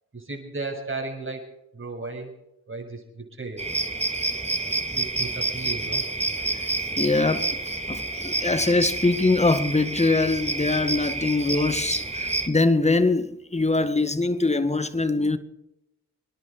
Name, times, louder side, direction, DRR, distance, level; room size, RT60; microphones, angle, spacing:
voice 1, 0.1-1.4 1.7-2.3 2.7-3.7 4.2-4.3 4.9-6.0 11.5-11.7, right 3 dB, 35° right, 6.9 m, -35 dB
sound 1, 3.6-12.5, right 2 dB, 15° right, 2.5 m, -29 dB
voice 2, 6.5-15.4, left 3 dB, 20° left, 1.9 m, -23 dB
27.5 x 11.0 x 4.9 m
supercardioid pair, 50°, 37 cm